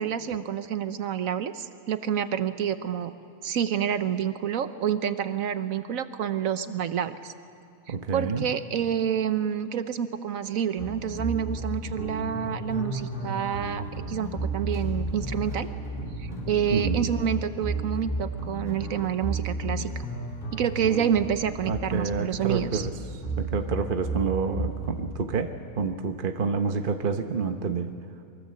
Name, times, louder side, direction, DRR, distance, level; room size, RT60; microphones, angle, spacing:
voice 1, 0.0-3.1 3.4-7.3 8.1-15.7 16.2-19.9 20.5-22.9, right 8 dB, 70° right, 11 dB, 1.3 m, -28 dB
voice 2, 7.9-8.5 16.7-17.1 21.7-22.9 23.4-27.9, right 5 dB, 40° right, 6 dB, 1.0 m, -28 dB
sound 1, 10.8-25.0, right 2 dB, 35° left, 4.6 m, -33 dB
24.0 x 22.5 x 7.6 m, 2.3 s
omnidirectional pair, 1.5 m